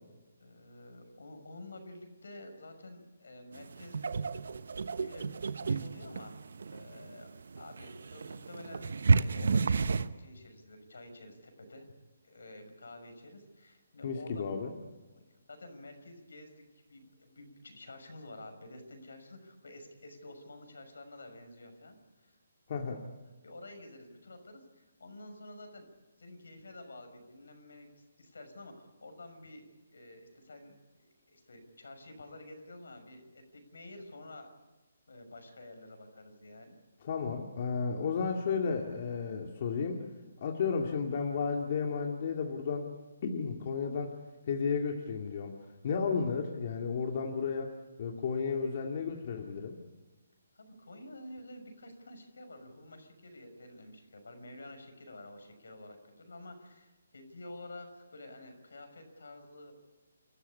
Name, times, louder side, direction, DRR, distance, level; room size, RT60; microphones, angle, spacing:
voice 1, 0.4-4.1 5.0-6.4 6.7-9.8 10.2-11.9 12.2-14.5 15.1-16.6 16.9-22.3 23.4-25.9 26.2-30.7 31.0-34.5 35.1-36.8 50.5-59.7, left 1 dB, 80° left, 6 dB, 6.1 m, -50 dB
sound 1, 3.5-10.1, right 4 dB, 70° right, 1.0 m, -31 dB
voice 2, 14.0-14.7 22.7-23.0 37.0-40.0 40.4-42.9 43.2-44.2 44.5-45.5 45.8-47.7 48.0-49.8, left 5 dB, 45° left, 2 dB, 2.4 m, -33 dB
28.0 x 14.5 x 9.8 m, 1.2 s
hypercardioid pair, 155°, 0 cm